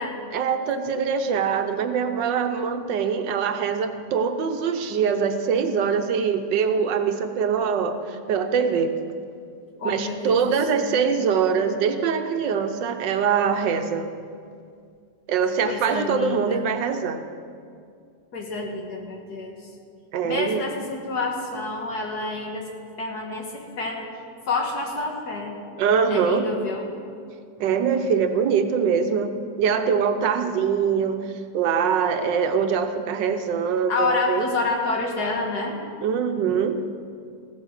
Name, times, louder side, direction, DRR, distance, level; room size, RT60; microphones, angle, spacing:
voice 1, 0.3-8.9 9.8-14.1 15.3-17.2 20.1-20.7 25.8-26.5 27.6-31.2 31.5-34.4 36.0-36.8, right 6 dB, 85° right, 7 dB, 1.5 m, -23 dB
voice 2, 9.8-11.0 15.6-16.6 18.3-19.6 20.2-22.7 23.0-24.1 24.5-25.6 26.1-26.9 33.9-35.8, left 3 dB, 60° left, 1 dB, 2.1 m, -28 dB
15.5 x 8.7 x 6.4 m, 2.3 s
omnidirectional pair, 1.9 m